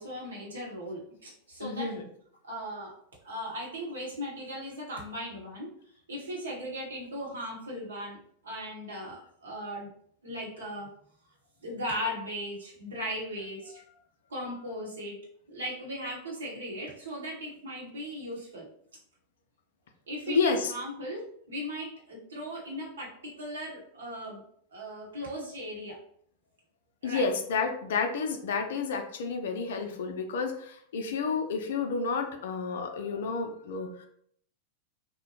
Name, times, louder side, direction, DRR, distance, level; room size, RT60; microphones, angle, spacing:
voice 1, 0.0-1.9 2.4-2.9 3.2-5.7 6.1-8.2 8.4-9.9 10.2-10.9 11.6-13.8 14.3-15.2 15.5-18.7 20.1-24.4 24.7-26.0 27.0-27.3, equal, 70° right, -3 dB, 0.9 m, -37 dB
voice 2, 1.6-2.0 20.3-20.7 27.0-34.1, left 4 dB, 60° left, 5 dB, 0.4 m, -30 dB
2.7 x 2.1 x 2.8 m, 0.64 s
figure-of-eight pair, 90°, 0 cm